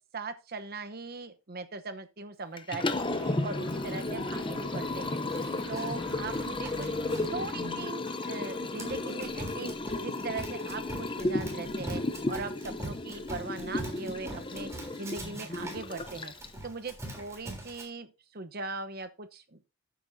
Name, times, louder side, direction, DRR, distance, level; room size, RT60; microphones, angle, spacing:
voice 1, 0.0-3.1 3.4-5.2 5.7-6.9 7.3-9.7 10.0-12.0 12.3-14.7 15.0-16.3 16.6-19.6, right 3 dB, 50° right, 0.9 m, -40 dB
Liquid, 2.6-16.7, left 2 dB, 25° left, 0.7 m, -34 dB
sound 1, 2.9-7.9, right 1 dB, 65° right, 2.0 m, -45 dB
Run, 5.3-17.8, right 1 dB, 15° right, 3.4 m, -44 dB
14.0 x 8.1 x 2.7 m
head